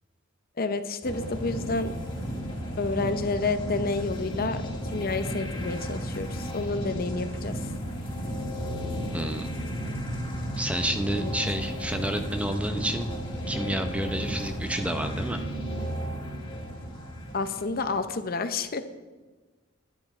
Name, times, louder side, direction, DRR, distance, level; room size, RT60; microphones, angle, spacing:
voice 1, 0.6-1.9 2.8-4.6 4.9-7.5 11.2-11.3 17.3-18.8, left 3 dB, 45° left, 9 dB, 0.7 m, -29 dB
sound 1, 1.0-18.2, equal, 25° left, 1.9 m, -34 dB
voice 2, 9.1-9.5 10.6-13.1 13.5-15.4, right 1 dB, 5° right, 6 dB, 0.7 m, -29 dB
10.5 x 10.5 x 4.4 m, 1.3 s
head